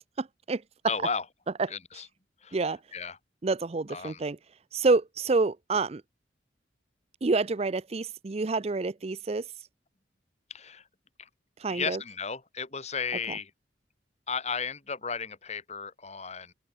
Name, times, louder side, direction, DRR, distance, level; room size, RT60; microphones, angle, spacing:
voice 1, 0.2-0.6 1.6-1.7 2.5-2.8 3.4-4.4 4.7-6.0 7.2-9.5 11.6-12.0 13.3-13.4, right 3 dB, 35° right, 0.5 m, -28 dB
voice 2, 0.9-1.2 1.7-2.1 2.4-2.6 2.9-3.2 3.9-4.2 10.5-10.8 11.2-11.3 11.7-13.5 14.3-16.5, left 5 dB, 35° left, 3.0 m, -34 dB
open air
head